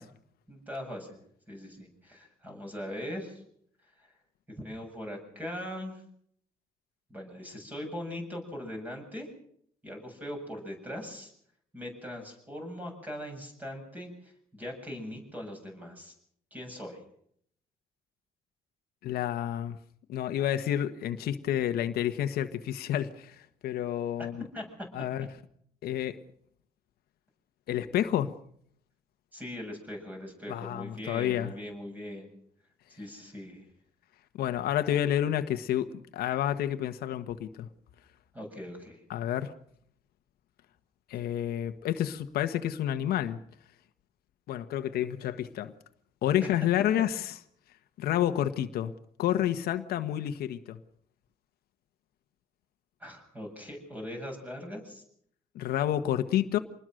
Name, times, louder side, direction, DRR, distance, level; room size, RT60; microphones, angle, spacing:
voice 1, 0.5-1.2 1.5-3.4 4.0-4.1 4.5-6.0 7.1-9.3 9.8-11.3 11.7-16.1 16.5-17.0 24.5-24.6 29.3-32.3 32.9-33.6 38.3-39.0 53.0-55.0, left 1 dB, 10° right, 7.8 m, -40 dB
voice 2, 19.0-19.8 20.1-24.4 24.9-25.3 25.8-26.2 27.7-28.3 30.5-31.5 34.4-35.9 36.1-37.7 39.1-39.5 41.1-43.4 44.5-45.7 46.2-47.3 48.0-48.9 49.2-50.8 55.5-56.6, left 11 dB, 85° left, 1.4 m, -29 dB
26.5 x 20.5 x 6.5 m
cardioid pair, 150°, 16 cm